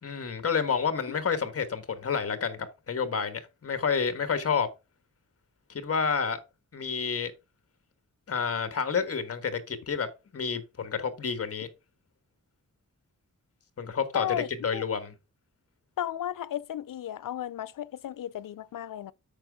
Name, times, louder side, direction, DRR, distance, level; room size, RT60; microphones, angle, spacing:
voice 1, 0.0-4.7 5.7-6.4 6.7-7.3 8.3-11.7 13.8-14.3 14.6-15.1, left 6 dB, 50° left, 1.5 m, -29 dB
voice 2, 14.1-14.9 16.0-19.1, left 11 dB, 85° left, 0.6 m, -34 dB
8.9 x 6.2 x 3.5 m
wide cardioid pair, 175°, 32 cm